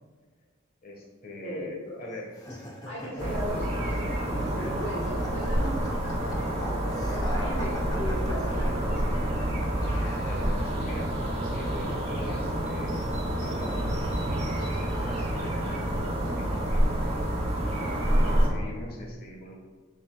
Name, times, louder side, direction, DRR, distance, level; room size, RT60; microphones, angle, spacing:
voice 1, 0.8-2.3 3.1-3.8 10.2-17.2 18.2-19.6, left 1 dB, 45° left, 0 dB, 1.3 m, -42 dB
voice 2, 1.4-2.0 2.8-9.3, equal, 65° left, -6 dB, 1.5 m, -37 dB
sound 1, 2.3-10.8, left 1 dB, 20° left, 0.8 m, -42 dB
sound 2, 3.2-18.5, right 1 dB, 35° right, 1.5 m, -28 dB
7.5 x 6.4 x 2.2 m, 1.5 s
head